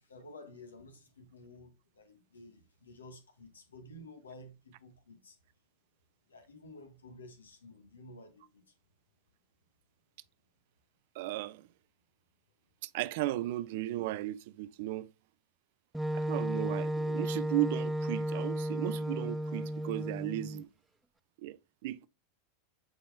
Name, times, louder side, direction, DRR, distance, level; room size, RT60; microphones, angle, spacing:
voice 1, 0.0-5.4 6.3-8.7, left 1 dB, 80° left, 1.6 m, -52 dB
voice 2, 11.1-11.7 12.8-15.1 16.1-20.7 21.4-22.1, right 15 dB, 60° right, 0.6 m, -35 dB
Wind instrument woodwind instrument, 15.9-20.6, right 1 dB, 5° right, 0.4 m, -34 dB
8.0 x 4.2 x 3.5 m
figure-of-eight pair, 90°, 0 cm